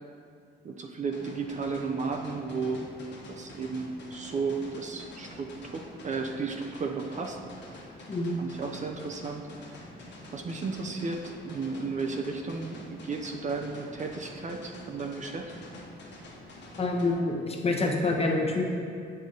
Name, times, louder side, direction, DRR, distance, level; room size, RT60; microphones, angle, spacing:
voice 1, 0.6-2.9 3.3-7.4 7.7-7.8 8.4-9.4 10.3-15.5, right 4 dB, 35° right, 3 dB, 0.6 m, -34 dB
sound 1, 1.1-17.1, left 1 dB, 60° left, 1.2 m, -47 dB
voice 2, 16.8-18.7, left 2 dB, 30° left, 1 dB, 1.0 m, -27 dB
7.0 x 5.5 x 3.9 m, 2.4 s
cardioid pair, 90°, 20 cm